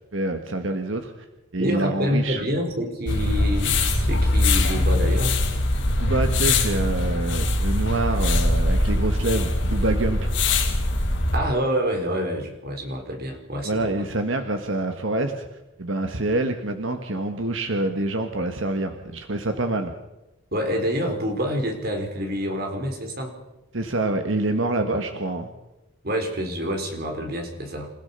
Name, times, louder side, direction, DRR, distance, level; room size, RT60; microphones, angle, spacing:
voice 1, 0.1-1.3 1.5-2.4 6.0-10.3 13.6-19.9 23.7-25.5, right 2 dB, 70° right, 6 dB, 1.6 m, -26 dB
voice 2, 1.6-5.3 11.3-13.9 20.5-23.4 26.0-27.9, equal, 50° right, 4 dB, 4.6 m, -27 dB
sound 1, 3.1-11.4, left 2 dB, 65° left, 4.3 m, -22 dB
28.5 x 16.5 x 5.6 m, 0.98 s
head